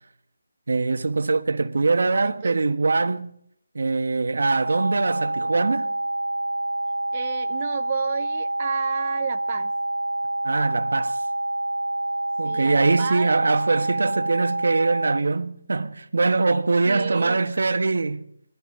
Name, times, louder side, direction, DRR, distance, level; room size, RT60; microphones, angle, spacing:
voice 1, 0.7-3.3 3.7-5.9 10.4-11.2 12.4-18.3, right 3 dB, 65° right, 1.3 m, -22 dB
voice 2, 2.1-2.6 7.1-9.7 12.4-13.3 16.8-17.4, right 7 dB, 30° right, 0.6 m, -32 dB
sound 1, 4.6-15.2, right 1 dB, 85° right, 0.6 m, -27 dB
21.5 x 14.5 x 4.0 m
figure-of-eight pair, 160°, 0 cm